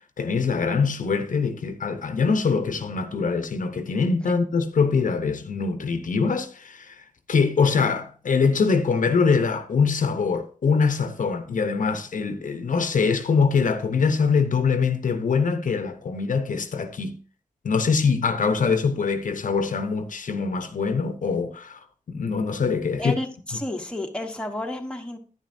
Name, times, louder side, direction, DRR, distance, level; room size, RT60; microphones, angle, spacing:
voice 1, 0.2-7.0 7.3-17.2 17.6-21.8 22.1-23.2, left 5 dB, 70° left, 0.8 m, -23 dB
voice 2, 23.0-25.2, left 1 dB, 5° left, 1.1 m, -31 dB
10.5 x 9.8 x 2.6 m
wide cardioid pair, 145°, 14 cm